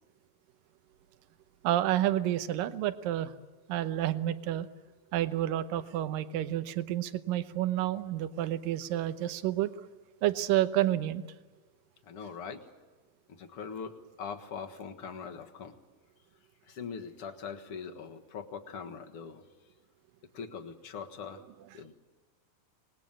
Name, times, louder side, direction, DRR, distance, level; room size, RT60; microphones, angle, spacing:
voice 1, 1.6-3.3 3.7-4.7 5.1-9.7 10.2-11.2, right 13 dB, 80° right, 12 dB, 2.6 m, -29 dB
voice 2, 12.1-12.6 13.3-15.8 16.6-19.4 20.3-21.4 21.7-21.9, left 6 dB, 50° left, 5 dB, 2.0 m, -42 dB
26.0 x 20.0 x 8.9 m, 1.3 s
omnidirectional pair, 4.0 m